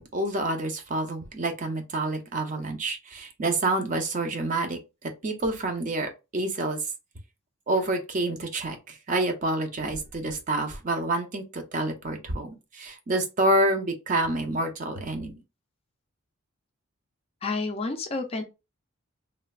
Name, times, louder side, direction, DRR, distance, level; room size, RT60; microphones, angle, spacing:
voice 1, 0.0-6.8 7.7-15.4, right 2 dB, 35° right, 0.5 m, -28 dB
voice 2, 17.4-18.4, left 3 dB, 25° left, 0.4 m, -30 dB
3.1 x 2.1 x 2.3 m
head